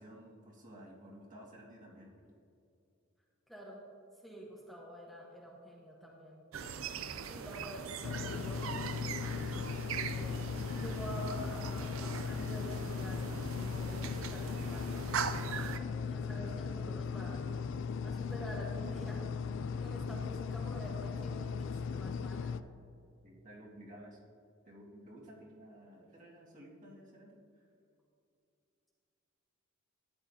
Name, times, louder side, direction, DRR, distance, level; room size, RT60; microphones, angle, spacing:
voice 1, 0.0-2.4 23.2-24.2 24.7-27.4, equal, 40° right, -4 dB, 1.9 m, -53 dB
voice 2, 3.5-3.8 4.2-6.4 7.2-8.6 9.9-17.4 18.0-19.3 19.8-22.5, equal, ahead, -4 dB, 1.1 m, -48 dB
sound 1, 6.5-15.8, right 6 dB, 70° right, 0.5 m, -41 dB
sound 2, 8.0-22.6, left 5 dB, 60° left, 0.3 m, -38 dB
13.0 x 9.6 x 2.8 m, 2.6 s
head